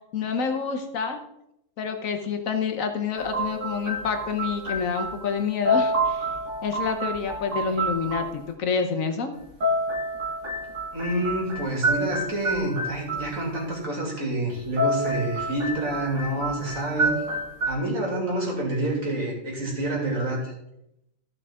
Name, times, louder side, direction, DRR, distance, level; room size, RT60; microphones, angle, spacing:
voice 1, 0.1-1.2 1.8-6.3 6.6-9.3, left 5 dB, 90° left, 6 dB, 1.4 m, -28 dB
sound 1, 3.1-5.4 5.6-8.4 9.4-13.6 14.5-17.7, right 1 dB, 65° right, 2.2 m, -28 dB
voice 2, 10.9-17.2 17.7-20.5, right 1 dB, 85° right, -2 dB, 3.0 m, -28 dB
14.5 x 5.7 x 3.6 m, 0.82 s
omnidirectional pair, 1.3 m